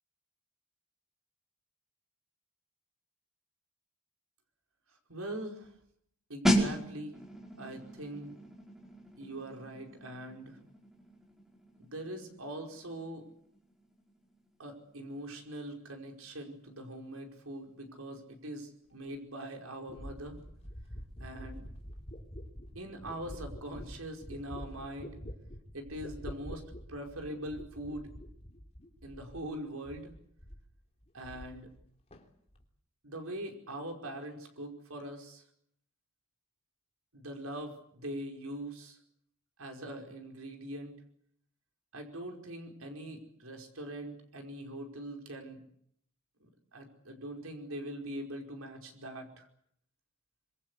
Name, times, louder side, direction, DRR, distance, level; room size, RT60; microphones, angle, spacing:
voice 1, 5.1-5.7 6.3-7.2 7.6-8.4 9.2-10.6 11.8-13.3 14.6-20.4 21.2-21.7 22.7-25.2 25.7-28.1 29.0-30.1 31.1-31.7 33.0-35.4 37.1-39.0 39.6-40.9 41.9-45.6 46.4-49.5, right 1 dB, 85° right, 3 dB, 5.1 m, -42 dB
sound 1, 6.5-17.0 17.2-17.5, equal, ahead, 5.0 m, -36 dB
sound 2, 19.1-19.2 19.9-29.6 29.8-30.7 31.0-31.9 32.1-32.6, equal, 30° left, 3.4 m, -47 dB
25.5 x 23.5 x 8.2 m, 0.69 s
head